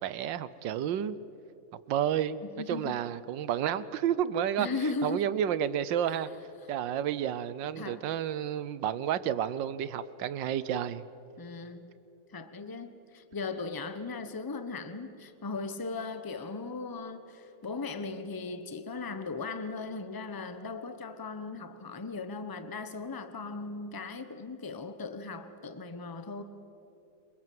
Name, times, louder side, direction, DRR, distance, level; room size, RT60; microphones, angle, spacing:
voice 1, 0.0-1.2 1.9-2.4 2.7-4.7 5.0-6.3 6.7-11.1, right 10 dB, 85° right, 16 dB, 1.5 m, -30 dB
voice 2, 2.4-3.0 4.6-5.3 7.8-8.0 11.4-11.9 12.3-26.4, left 3 dB, 15° left, 10 dB, 0.9 m, -38 dB
27.0 x 23.0 x 7.7 m, 2.9 s
omnidirectional pair, 1.9 m